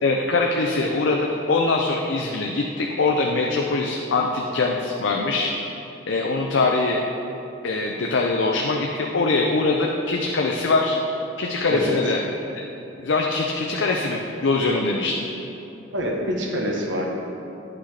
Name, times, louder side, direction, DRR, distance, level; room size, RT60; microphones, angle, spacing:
voice 1, 0.0-5.5 6.1-7.0 7.6-11.0 11.4-12.2 13.0-15.3, left 3 dB, 75° left, 0 dB, 0.5 m, -22 dB
voice 2, 15.9-17.1, equal, 70° right, -1 dB, 1.0 m, -25 dB
10.0 x 5.9 x 3.3 m, 2.9 s
head